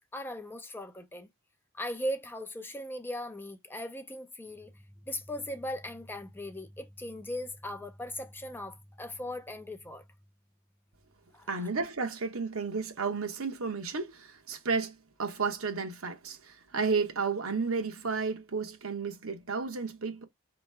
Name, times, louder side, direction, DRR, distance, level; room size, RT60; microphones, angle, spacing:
voice 1, 0.1-1.3 1.7-4.7 5.1-10.0 11.3-11.7, left 1 dB, 10° left, 0.4 m, -38 dB
voice 2, 11.5-20.2, right 4 dB, 75° right, 1.0 m, -32 dB
4.6 x 3.0 x 3.3 m
head